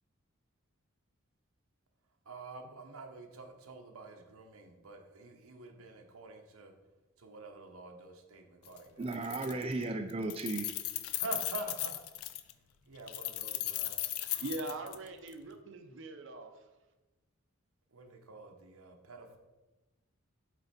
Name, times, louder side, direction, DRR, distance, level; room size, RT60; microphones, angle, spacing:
voice 1, 2.2-6.7 7.2-9.3 11.1-12.0 12.8-14.4 17.9-19.4, right 3 dB, 90° right, 1.0 m, -47 dB
Keys jangling, 8.7-8.8 9.1-9.8 10.1-12.5 13.1-15.3, left 14 dB, 90° left, 0.4 m, -37 dB
voice 2, 9.0-10.7, right 2 dB, 25° right, 0.3 m, -35 dB
voice 3, 14.3-16.7, right 2 dB, 60° right, 0.7 m, -42 dB
7.8 x 4.0 x 4.2 m
head